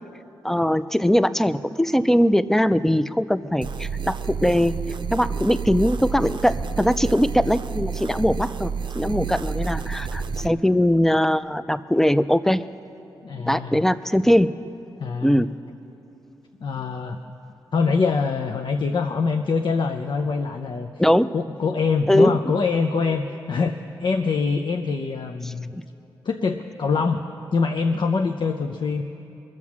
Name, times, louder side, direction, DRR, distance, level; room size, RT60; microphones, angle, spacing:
voice 1, 0.4-4.8 5.1-12.6 13.5-14.5 15.2-15.5 21.0-21.3 22.1-22.4 25.4-25.8, equal, 5° left, 13 dB, 0.5 m, -21 dB
sound 1, 3.6-10.5, right 5 dB, 55° right, 0.6 m, -29 dB
voice 2, 13.2-13.8 15.0-15.4 16.6-17.2 17.7-20.9 21.3-25.7 26.2-27.2 27.5-29.0, left 4 dB, 60° left, 4 dB, 0.6 m, -24 dB
21.5 x 7.4 x 6.1 m, 2.9 s
cardioid pair, 55°, 9 cm